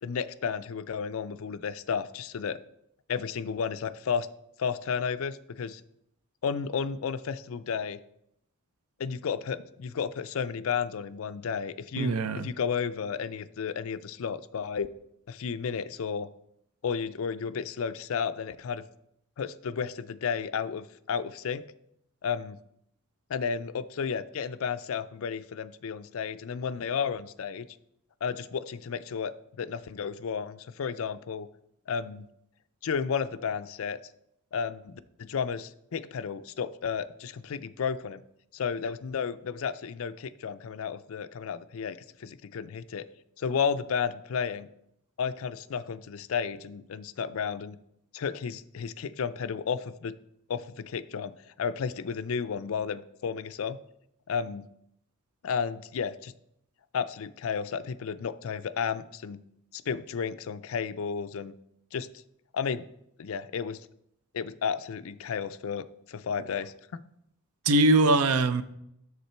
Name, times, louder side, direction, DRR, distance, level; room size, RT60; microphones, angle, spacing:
voice 1, 0.0-2.6 3.1-4.3 4.6-5.8 6.4-8.0 9.0-12.2 12.4-14.9 15.3-16.3 16.8-18.8 19.4-21.6 22.2-22.6 23.3-27.7 28.2-31.5 31.9-32.3 32.8-34.0 34.5-38.2 38.5-43.1 43.4-44.7 45.2-47.8 48.1-50.1 50.5-53.8 54.3-54.7 55.4-56.3 56.9-59.4 59.7-61.5 61.9-62.1 62.5-62.8 63.2-63.8 64.3-67.0, left 6 dB, 65° left, 12 dB, 0.4 m, -32 dB
voice 2, 12.0-12.5 67.7-68.6, right 2 dB, 85° right, 12 dB, 0.6 m, -22 dB
8.2 x 6.6 x 4.4 m, 0.77 s
head